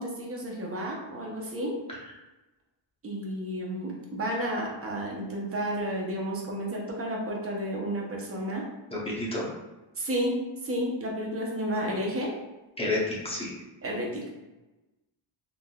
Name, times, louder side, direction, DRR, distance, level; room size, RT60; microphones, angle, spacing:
voice 1, 0.0-1.8 3.0-8.6 10.0-12.3 13.8-14.3, equal, 30° right, -1 dB, 0.7 m, -31 dB
voice 2, 8.9-9.5 12.8-13.5, left 2 dB, 10° left, -5 dB, 0.7 m, -30 dB
3.5 x 2.5 x 2.2 m, 1.1 s
cardioid pair, 130°, 49 cm